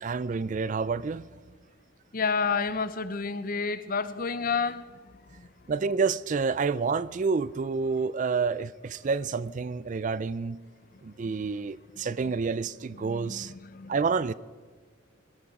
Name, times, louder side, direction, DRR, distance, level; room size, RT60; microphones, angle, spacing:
voice 1, 0.0-1.3 5.7-10.6 11.0-13.5 13.9-14.3, right 5 dB, 40° right, 0.4 m, -28 dB
voice 2, 2.1-4.8 5.4-5.5 13.0-13.9, left 5 dB, 45° left, 0.6 m, -30 dB
21.5 x 13.0 x 4.9 m
head